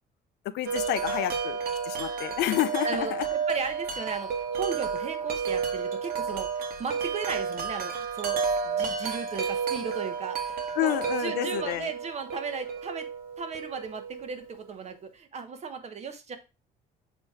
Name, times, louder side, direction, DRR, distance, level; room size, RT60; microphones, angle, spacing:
voice 1, 0.5-1.6 1.8-3.3 10.8-11.9, left 14 dB, 80° left, 13 dB, 0.6 m, -29 dB
Wind chime, 0.6-14.6, right 6 dB, 60° right, 1.4 m, -31 dB
voice 2, 3.5-13.1 13.4-16.4, right 5 dB, 40° right, 7 dB, 1.2 m, -36 dB
7.6 x 3.0 x 4.6 m, 0.29 s
cardioid pair, 110°, 17 cm